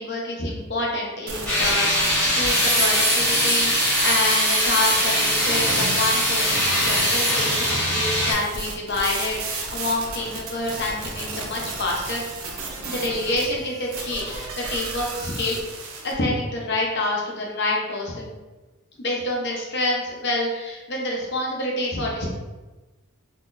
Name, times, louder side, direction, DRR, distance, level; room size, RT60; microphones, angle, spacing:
voice 1, 0.0-12.2 12.5-12.6 12.8-15.6 16.0-18.3 19.0-22.3, left 2 dB, 50° left, -2 dB, 0.8 m, -27 dB
sound 1, 1.3-16.1, right 4 dB, 70° right, 0.6 m, -32 dB
sound 2, 1.5-8.3, equal, 5° left, 1.3 m, -21 dB
3.8 x 2.9 x 2.5 m, 1.2 s
head